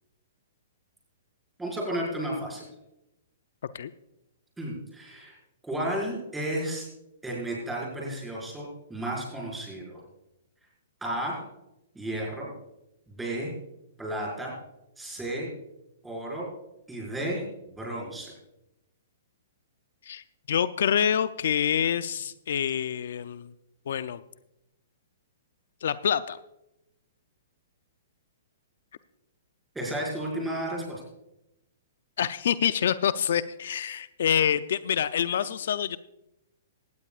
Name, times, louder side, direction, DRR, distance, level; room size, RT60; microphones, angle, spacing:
voice 1, 1.6-2.6 4.6-5.4 5.7-6.9 7.2-10.0 11.0-11.4 12.0-12.5 13.1-13.5 14.0-14.5 15.0-15.5 16.0-16.5 16.9-18.3 29.8-31.0, right 1 dB, 5° right, -3 dB, 5.3 m, -33 dB
voice 2, 20.1-23.5 23.9-24.2 25.8-26.4 32.2-36.0, left 8 dB, 70° left, 14 dB, 0.5 m, -26 dB
18.0 x 13.0 x 2.5 m, 0.87 s
hypercardioid pair, 140°, 0 cm